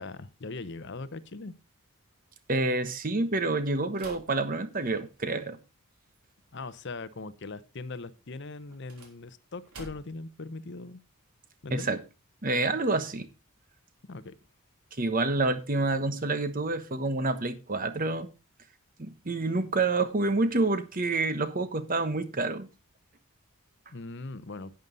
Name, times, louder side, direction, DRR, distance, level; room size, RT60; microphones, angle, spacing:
voice 1, 0.0-1.5 6.5-11.0 11.6-12.0 14.1-14.3 23.9-24.7, left 3 dB, 50° left, 0.8 m, -40 dB
voice 2, 2.5-5.6 11.7-12.0 12.4-13.3 15.0-18.3 19.0-22.7, right 2 dB, 40° right, 1.1 m, -28 dB
sound 1, 3.9-5.3 8.7-10.3, right 2 dB, 90° right, 3.5 m, -49 dB
11.0 x 9.1 x 3.9 m
head